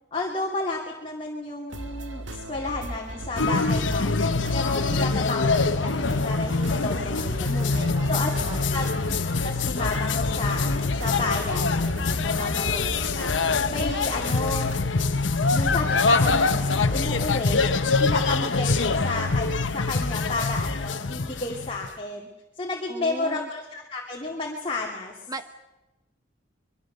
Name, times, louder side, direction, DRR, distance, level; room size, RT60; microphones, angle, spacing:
voice 1, 0.1-4.2 4.5-7.7 8.1-8.3 8.7-8.9 9.4-13.3 13.7-14.7 15.5-17.6 18.0-22.3 22.6-25.1, left 3 dB, 30° left, -1 dB, 2.4 m, -32 dB
sound 1, 1.7-14.8, right 1 dB, 90° right, 1.9 m, -37 dB
sound 2, 3.4-21.9, left 3 dB, 85° left, 1.1 m, -24 dB
voice 2, 7.5-8.2 8.5-8.6 22.9-23.5 25.3-25.6, right 1 dB, 20° right, 9 dB, 1.0 m, -37 dB
25.0 x 22.5 x 6.7 m, 1.0 s
head